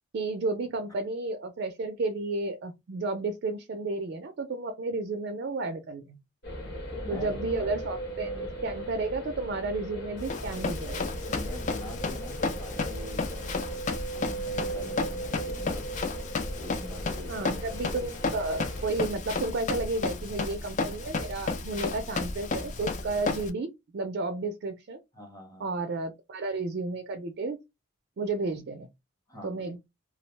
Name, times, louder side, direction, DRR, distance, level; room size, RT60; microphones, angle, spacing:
voice 1, 0.1-6.2 7.1-11.1 17.3-25.0 25.6-27.6 28.2-28.9 29.4-29.8, right 3 dB, 50° right, 0.3 m, -32 dB
sound 1, 6.4-19.0, right 1 dB, 50° left, 0.9 m, -38 dB
voice 2, 6.6-7.7 8.1-8.6 11.3-13.8 14.1-15.9 16.6-17.6 18.0-18.1 25.1-25.7 29.3-29.8, equal, 15° left, 0.7 m, -45 dB
Run, 10.2-23.5, left 3 dB, 35° left, 0.3 m, -33 dB
2.3 x 2.0 x 3.1 m
head